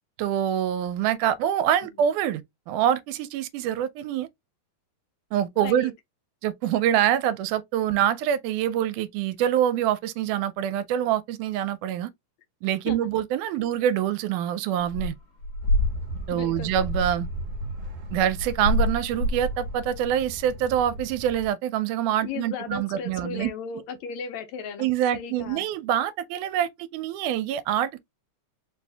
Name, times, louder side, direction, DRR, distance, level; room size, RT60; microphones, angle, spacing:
voice 1, 0.2-2.4 2.7-4.3 5.3-5.9 6.4-12.1 12.6-15.1 16.3-17.3 18.1-23.5 24.8-28.0, right 10 dB, 85° right, 2.0 m, -25 dB
sound 1, 14.8-15.1 15.4-20.0, equal, 50° left, 2.0 m, -27 dB
sound 2, 15.6-21.5, equal, 70° right, 1.8 m, -37 dB
voice 2, 16.3-16.7 22.2-24.9 25.1-25.7, left 6 dB, 75° left, 1.8 m, -36 dB
4.7 x 2.6 x 3.3 m
omnidirectional pair, 3.6 m